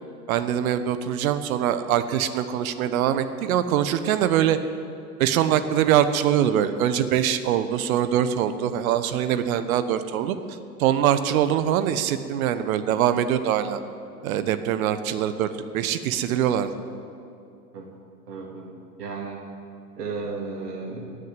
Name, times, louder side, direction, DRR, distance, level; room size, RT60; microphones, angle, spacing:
voice 1, 0.3-4.6 5.2-13.8 14.2-15.5 15.7-16.7, right 10 dB, 60° right, 11 dB, 1.2 m, -23 dB
voice 2, 18.3-19.5 20.0-21.2, right 4 dB, 75° right, 0 dB, 2.4 m, -35 dB
18.0 x 6.6 x 9.1 m, 2.5 s
hypercardioid pair, 105°, 48 cm